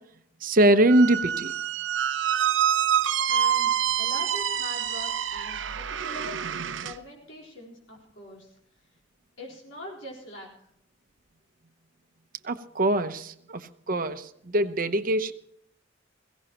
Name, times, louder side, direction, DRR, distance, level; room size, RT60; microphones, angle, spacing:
voice 1, 0.4-1.5 12.4-15.3, right 1 dB, 45° right, 10 dB, 0.8 m, -23 dB
Squeak, 0.9-7.0, right 9 dB, 75° right, 0.6 m, -26 dB
voice 2, 3.3-8.6 9.4-10.5, equal, 90° left, -3 dB, 4.1 m, -43 dB
22.0 x 16.5 x 3.0 m, 0.70 s
head